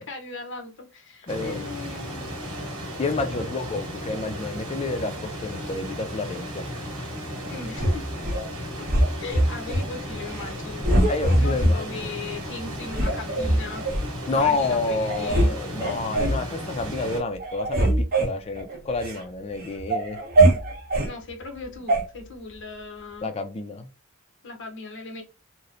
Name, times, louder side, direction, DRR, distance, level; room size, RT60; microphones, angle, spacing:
voice 1, 0.0-2.3 3.3-3.5 7.4-8.1 8.8-8.9 9.2-11.1 11.4-13.9 14.3-15.6 21.0-23.3 24.4-25.2, left 3 dB, 55° left, 0.7 m, -38 dB
voice 2, 1.2-1.7 3.0-6.6 11.1-11.9 14.3-20.2 23.2-23.9, left 3 dB, 30° left, 0.3 m, -29 dB
sound 1, 1.3-17.2, equal, 85° right, 1.0 m, -35 dB
sound 2, 7.8-8.4 8.9-9.9 10.3-10.5 10.8-11.8 12.3-12.4 12.9-14.1 14.7-14.8 15.0-15.5 15.8-16.4 16.9-17.1 17.4-19.2 19.6-21.1 21.9-22.0, right 1 dB, 45° right, 0.8 m, -22 dB
2.9 x 2.0 x 2.5 m
head